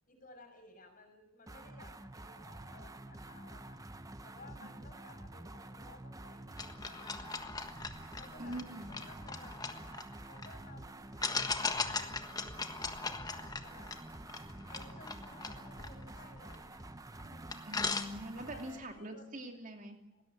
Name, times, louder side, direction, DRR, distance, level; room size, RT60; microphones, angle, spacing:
voice 1, 0.1-3.8 4.2-7.6 8.1-10.0 10.3-13.9 14.7-16.9 17.1-17.5 18.5-19.2 20.1-20.2, left 2 dB, 40° left, 5 dB, 6.3 m, -57 dB
sound 1, 1.5-18.9, right 2 dB, 15° right, 0.9 m, -49 dB
sound 2, 6.6-10.5 11.2-16.8 17.2-17.3 17.5-18.6, left 4 dB, 20° left, 1.5 m, -39 dB
voice 2, 8.4-8.9 17.7-20.0, right 1 dB, 40° right, 4 dB, 2.8 m, -43 dB
20.0 x 17.5 x 9.6 m, 0.90 s
head